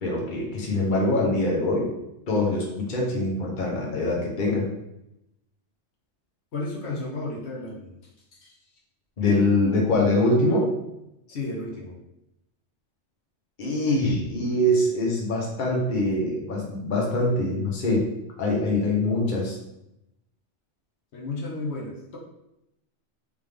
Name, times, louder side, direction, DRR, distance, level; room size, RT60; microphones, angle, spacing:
voice 1, 0.0-1.9 2.3-4.7 9.2-10.7 13.6-18.1 18.4-19.6, left 1 dB, 45° left, -2 dB, 1.0 m, -24 dB
voice 2, 6.5-7.9 8.3-8.6 11.3-12.0 13.9-14.1 21.1-22.2, left 2 dB, 70° left, -3 dB, 1.1 m, -33 dB
3.6 x 3.4 x 3.4 m, 0.86 s
omnidirectional pair, 1.2 m